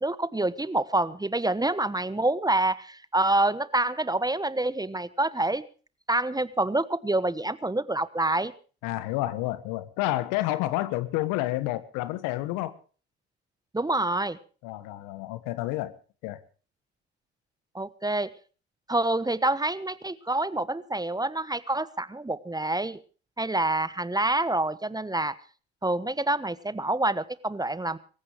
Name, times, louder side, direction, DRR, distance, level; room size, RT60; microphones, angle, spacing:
voice 1, 0.0-5.6 6.1-8.5 13.7-14.4 17.7-18.3 18.9-23.0 23.4-25.3 25.8-28.0, right 2 dB, 10° right, 1.1 m, -27 dB
voice 2, 8.8-12.7 14.6-15.9 16.2-16.4, left 16 dB, 70° left, 1.6 m, -29 dB
24.5 x 15.0 x 3.1 m
hypercardioid pair, 60°, 33 cm